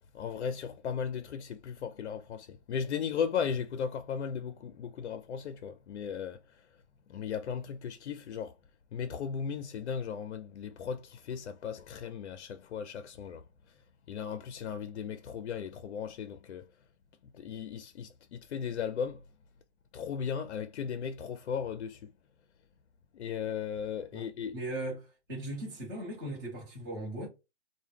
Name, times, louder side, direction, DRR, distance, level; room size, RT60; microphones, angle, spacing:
voice 1, 0.1-6.7 7.1-8.5 8.9-13.8 14.1-16.7 17.3-19.2 19.9-22.1 23.1-24.5, left 7 dB, 75° left, 0.5 m, -36 dB
voice 2, 24.1-27.3, right 1 dB, 20° right, 0.9 m, -38 dB
2.2 x 2.1 x 3.2 m
hypercardioid pair, 170°, 34 cm